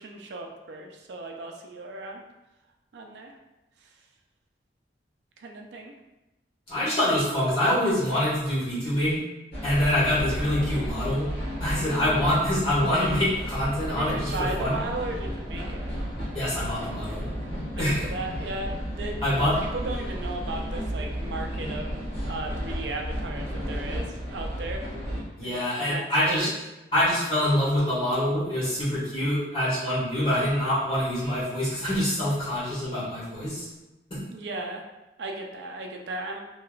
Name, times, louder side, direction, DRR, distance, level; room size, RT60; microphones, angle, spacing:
voice 1, 0.0-2.2 2.9-3.3 3.8-3.9 5.4-5.9 11.9-12.4 13.9-15.9 17.8-22.0 22.3-24.8 25.4-26.5 34.3-34.8 35.2-36.4, right 2 dB, 75° right, 2 dB, 0.4 m, -36 dB
voice 2, 6.7-9.2 9.6-11.3 11.6-14.8 16.3-17.2 17.8-18.0 19.2-19.5 25.4-26.5 26.9-33.7 34.1-34.2, left 1 dB, 30° left, -10 dB, 1.5 m, -25 dB
sound 1, 9.5-25.2, equal, 70° left, 1.4 m, -33 dB
3.1 x 2.9 x 2.3 m, 1.0 s
head